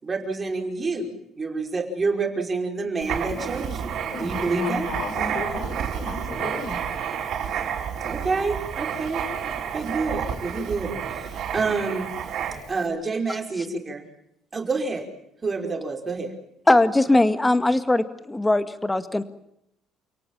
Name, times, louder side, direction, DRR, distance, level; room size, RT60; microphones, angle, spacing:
voice 1, 0.0-4.9 8.0-9.2 9.7-12.1 12.7-14.1 14.5-15.1 15.4-16.3, right 3 dB, 25° right, 4 dB, 5.2 m, -28 dB
Writing, 3.0-12.8, right 8 dB, 60° right, 5.5 m, -30 dB
voice 2, 4.1-6.8, left 3 dB, 55° left, 1 dB, 7.0 m, -34 dB
voice 3, 16.7-19.2, left 2 dB, 10° left, 10 dB, 2.0 m, -20 dB
29.0 x 18.0 x 7.5 m, 0.78 s
cardioid pair, 125°, 0 cm